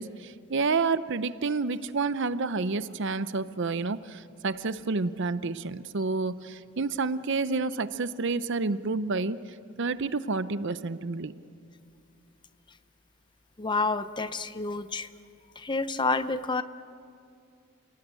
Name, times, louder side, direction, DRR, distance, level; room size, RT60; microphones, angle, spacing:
voice 1, 0.0-9.4 9.8-11.3, right 4 dB, 55° right, 14 dB, 0.7 m, -29 dB
voice 2, 13.6-15.1 15.6-16.6, left 3 dB, 20° left, 12 dB, 0.6 m, -29 dB
29.0 x 18.0 x 9.0 m, 2.4 s
head